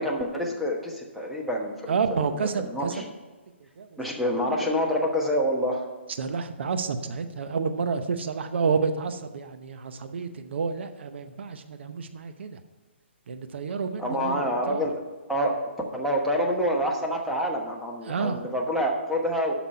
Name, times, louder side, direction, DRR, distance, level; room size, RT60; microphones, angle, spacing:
voice 1, 0.0-2.3 2.7-3.1 4.0-5.8 14.0-15.0 15.3-19.6, equal, ahead, -2 dB, 1.2 m, -27 dB
voice 2, 1.9-2.9 3.8-4.0 6.2-12.6 13.3-14.3 14.7-14.9 18.1-18.4, right 5 dB, 65° right, 8 dB, 0.8 m, -29 dB
8.4 x 6.0 x 5.7 m, 1.3 s
hypercardioid pair, 150°, 7 cm